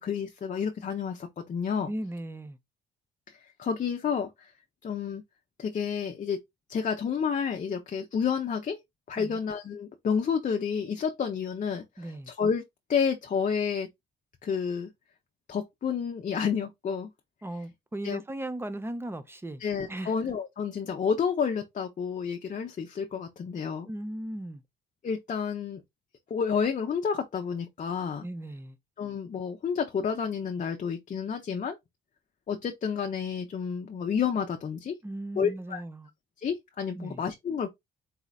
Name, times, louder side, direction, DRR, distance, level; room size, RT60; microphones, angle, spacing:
voice 1, 0.0-1.9 3.3-4.5 4.8-5.2 5.6-6.4 6.7-8.8 9.1-12.6 12.9-13.9 14.4-14.9 15.5-17.1 18.0-18.2 19.6-23.9 25.0-25.8 26.3-28.2 29.0-31.8 32.5-35.0 35.3-35.8 36.4-37.7, left 6 dB, 40° left, 0.7 m, -30 dB
voice 2, 1.9-2.6 9.2-9.4 12.0-12.3 17.4-19.6 19.9-20.1 23.8-24.6 28.2-28.8 35.0-36.1 36.9-37.2, right 1 dB, 10° right, 0.6 m, -37 dB
4.2 x 3.8 x 2.3 m
cardioid pair, 90°, 20 cm